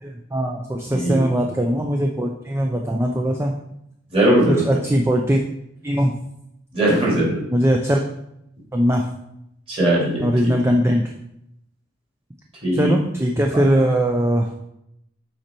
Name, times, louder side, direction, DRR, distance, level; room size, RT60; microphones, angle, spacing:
voice 1, 0.0-3.5 4.5-5.4 5.8-6.1 7.5-8.0 8.7-9.0 10.2-11.0 12.7-14.5, equal, 10° right, 1 dB, 0.5 m, -20 dB
voice 2, 0.9-1.3 4.1-4.8 6.7-7.4 9.7-10.6 12.6-12.9 13.5-13.6, right 1 dB, 30° right, -5 dB, 2.8 m, -20 dB
7.8 x 4.3 x 4.4 m, 0.80 s
head